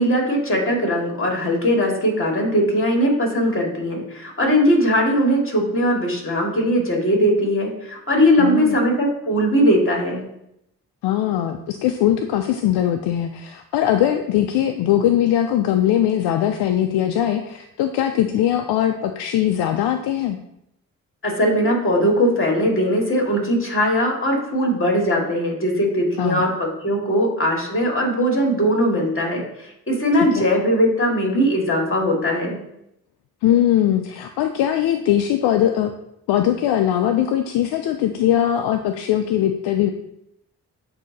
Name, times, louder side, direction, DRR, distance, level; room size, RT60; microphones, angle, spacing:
voice 1, 0.0-10.2 21.2-32.6, equal, 30° left, 0 dB, 2.3 m, -20 dB
voice 2, 8.4-8.8 11.0-20.4 26.2-26.5 30.4-30.5 33.4-35.9 36.3-39.9, left 11 dB, 80° left, 7 dB, 0.5 m, -20 dB
8.3 x 2.8 x 4.1 m, 0.80 s
supercardioid pair, 40°, 39 cm